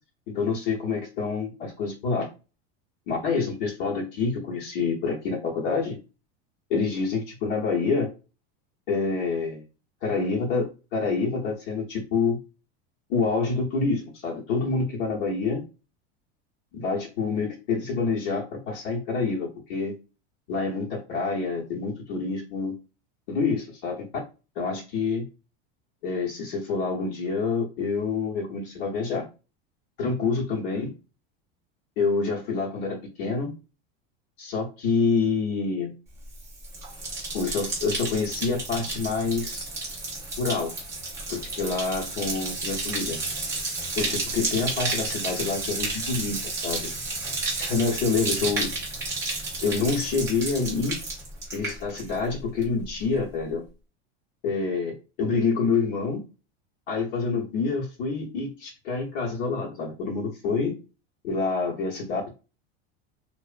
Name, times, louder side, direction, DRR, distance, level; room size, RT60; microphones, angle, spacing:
voice 1, 0.3-2.3 3.1-6.0 6.7-8.1 8.9-9.6 10.0-10.7 10.9-12.4 13.1-15.6 16.7-19.9 20.5-22.7 23.3-24.1 24.6-25.2 26.0-29.2 30.0-30.9 32.0-33.5 34.4-35.9 37.3-39.6 40.4-40.7 41.3-43.2 44.0-46.9 47.6-48.7 49.6-51.0 51.5-53.6 54.4-56.2 56.9-60.7 61.2-62.3, left 4 dB, 55° left, -1 dB, 0.8 m, -27 dB
Bathtub (filling or washing), 36.2-52.3 52.6-53.1, right 3 dB, 10° right, 0.4 m, -32 dB
2.9 x 2.0 x 2.4 m, 0.32 s
supercardioid pair, 175°, 32 cm